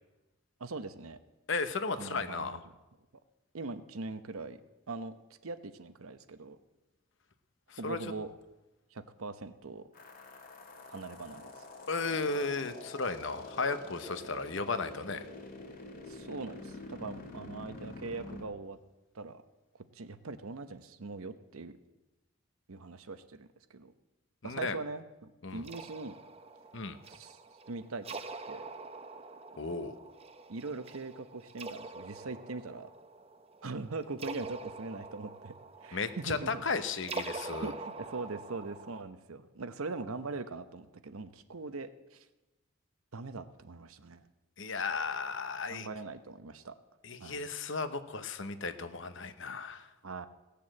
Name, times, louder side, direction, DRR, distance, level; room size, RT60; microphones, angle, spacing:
voice 1, 0.6-1.2 2.0-2.6 3.5-4.6 4.9-5.1 5.4-6.6 7.8-8.3 8.9-9.9 10.9-11.4 16.1-18.8 19.1-19.4 19.9-21.7 22.7-23.9 24.4-26.1 27.1-27.4 27.7-28.2 28.5-28.6 30.5-32.9 33.6-35.5 35.8-36.6 37.6-42.3 43.1-44.3 45.7-46.8 47.2-47.4 50.0-50.3, right 3 dB, 80° right, 11 dB, 0.8 m, -41 dB
voice 2, 1.5-2.6 7.7-8.0 11.9-15.3 24.4-24.8 25.4-25.6 26.7-27.0 29.6-30.0 35.9-37.7 44.6-45.9 47.0-49.9, left 4 dB, 60° left, 10 dB, 0.9 m, -35 dB
sound 1, 9.9-18.4, left 2 dB, 40° left, 2.0 m, -47 dB
sound 2, 25.6-39.0, right 3 dB, 30° right, 0.6 m, -45 dB
17.5 x 6.9 x 7.6 m, 1.1 s
head